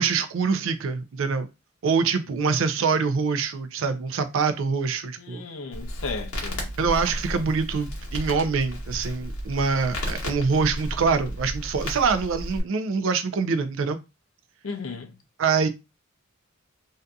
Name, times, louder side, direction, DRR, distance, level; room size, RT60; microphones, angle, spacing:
voice 1, 0.0-1.5 1.8-5.4 6.8-14.0 15.4-15.7, right 5 dB, 65° right, 0.4 m, -25 dB
voice 2, 5.2-6.7 14.6-15.2, left 4 dB, 65° left, 0.5 m, -35 dB
Crackle, 5.7-12.6, equal, 90° left, 0.8 m, -33 dB
2.6 x 2.4 x 2.2 m
head